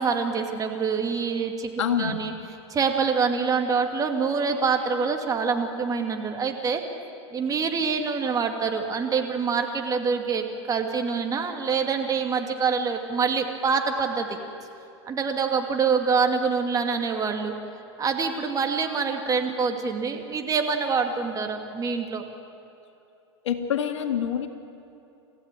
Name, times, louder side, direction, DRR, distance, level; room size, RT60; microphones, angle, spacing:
voice 1, 0.0-2.3 2.7-6.8 7.3-14.3 15.1-17.5 18.0-22.2, right 5 dB, 25° right, 4 dB, 2.6 m, -25 dB
voice 2, 1.8-2.2 23.4-24.5, left 9 dB, 80° left, 6 dB, 2.0 m, -26 dB
28.5 x 15.5 x 9.3 m, 2.8 s
hypercardioid pair, 110°, 15 cm